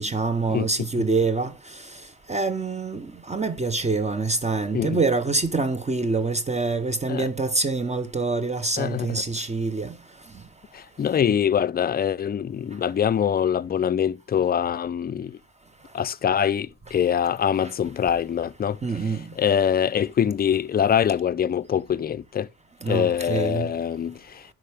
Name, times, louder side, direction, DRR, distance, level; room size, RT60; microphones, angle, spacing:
voice 1, 0.0-1.8 2.3-9.9 17.6-17.7 18.8-19.2 22.8-23.7, right 3 dB, 20° right, 0.9 m, -25 dB
voice 2, 8.8-9.2 10.7-15.4 15.9-18.8 19.4-22.5 22.9-24.5, left 8 dB, 30° left, 0.5 m, -24 dB
9.9 x 6.0 x 3.4 m
cardioid pair, 90°, 30 cm